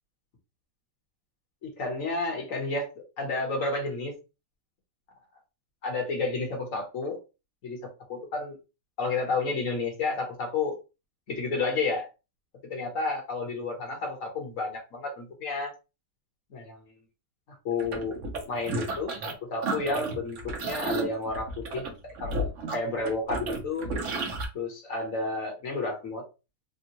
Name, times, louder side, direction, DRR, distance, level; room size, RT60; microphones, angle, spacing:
voice 1, 1.6-2.9 3.2-4.1 5.8-7.2 7.6-7.8 8.1-8.6 9.0-10.8 11.3-12.1 12.7-15.7 16.5-16.8 17.6-18.2 18.5-21.9 22.2-23.9 24.5-26.2, left 3 dB, 50° left, 1.1 m, -31 dB
sound 1, 17.8-19.3 19.6-24.4, right 2 dB, 70° right, 0.7 m, -32 dB
3.6 x 2.2 x 2.8 m
omnidirectional pair, 2.3 m